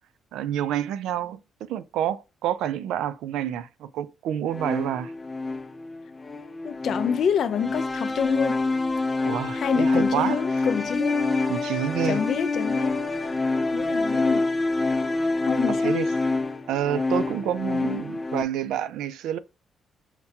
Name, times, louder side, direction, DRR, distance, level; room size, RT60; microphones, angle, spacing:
voice 1, 0.3-5.1 9.2-10.4 11.5-12.2 15.7-16.1 16.7-19.4, right 10 dB, 90° right, 0.3 m, -28 dB
sound 1, 4.5-18.4, left 3 dB, 20° left, 0.6 m, -26 dB
voice 2, 6.6-8.6 9.5-11.2 12.0-13.0 13.7-14.5 15.4-16.0, left 7 dB, 60° left, 0.4 m, -27 dB
5.7 x 2.2 x 2.7 m
cardioid pair, 90°, 0 cm